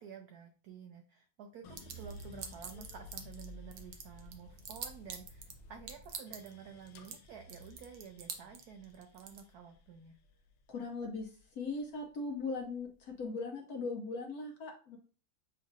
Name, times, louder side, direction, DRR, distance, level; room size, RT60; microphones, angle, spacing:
voice 1, 0.0-10.2, right 7 dB, 85° right, 5 dB, 0.8 m, -51 dB
sound 1, 1.6-11.8 12.3-13.1, left 1 dB, 75° left, 1.3 m, -53 dB
sound 2, 1.8-3.5 3.7-5.5 5.9-6.5 6.9-7.2 7.5-9.4, right 7 dB, 65° right, 1.2 m, -43 dB
voice 2, 10.7-15.0, left 3 dB, 60° left, 1 dB, 1.1 m, -39 dB
7.0 x 2.4 x 2.6 m, 0.39 s
omnidirectional pair, 2.2 m